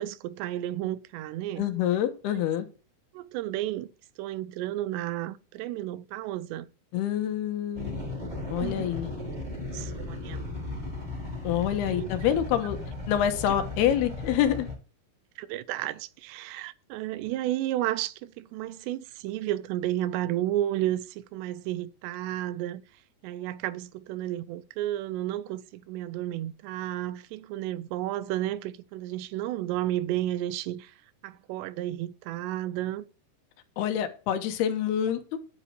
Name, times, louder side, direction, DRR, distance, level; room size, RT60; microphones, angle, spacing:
voice 1, 0.0-1.7 2.3-2.4 3.1-3.9 4.2-6.7 8.6-8.9 9.7-10.4 12.0-12.1 15.4-22.8 23.2-30.9 31.2-33.1, right 14 dB, 85° right, 2.8 m, -32 dB
voice 2, 1.6-2.7 6.9-9.1 11.4-12.8 13.1-14.7 33.8-35.4, left 10 dB, 75° left, 2.9 m, -27 dB
sound 1, 7.7-14.7, left 2 dB, 10° right, 3.7 m, -36 dB
10.0 x 9.7 x 2.9 m
omnidirectional pair, 5.0 m